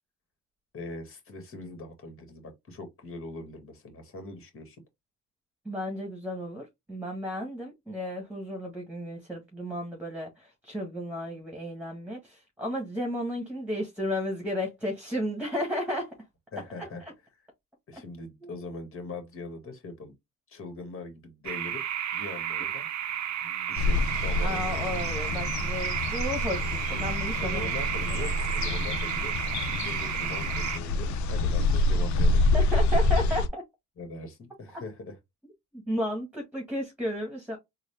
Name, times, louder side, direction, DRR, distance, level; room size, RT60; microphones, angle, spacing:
voice 1, 0.7-4.8 16.5-17.0 17.9-20.1 20.5-21.8 22.1-22.9 23.4-25.0 27.4-29.4 29.7-32.4 34.0-35.2, left 3 dB, 45° left, 1.7 m, -41 dB
voice 2, 5.6-16.1 16.8-16.9 18.4-18.5 24.4-27.7 28.1-28.3 32.5-33.6 34.7-34.8 35.7-37.6, equal, 5° right, 1.4 m, -33 dB
sound 1, 21.4-30.8, right 10 dB, 65° right, 0.7 m, -32 dB
sound 2, 23.8-33.5, left 2 dB, 70° left, 0.6 m, -27 dB
3.8 x 2.2 x 3.3 m
cardioid pair, 90°, 30 cm